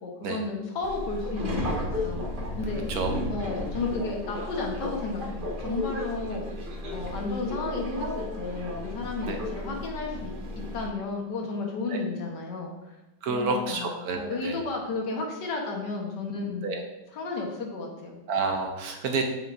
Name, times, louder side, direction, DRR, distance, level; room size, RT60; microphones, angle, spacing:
voice 1, 0.0-2.2 2.6-2.8 3.3-6.6 6.9-10.3 10.7-13.0 13.3-16.6 17.1-18.2, left 3 dB, 75° left, 1 dB, 1.7 m, -33 dB
Subway metro underground, 0.8-10.9, left 1 dB, 35° right, 1.0 m, -33 dB
voice 2, 6.3-6.6 7.0-7.1 9.3-9.4 11.9-12.0 13.2-14.6 16.6-16.8 18.3-19.2, right 4 dB, 70° right, 4 dB, 1.0 m, -29 dB
7.8 x 5.2 x 2.5 m, 0.98 s
omnidirectional pair, 1.9 m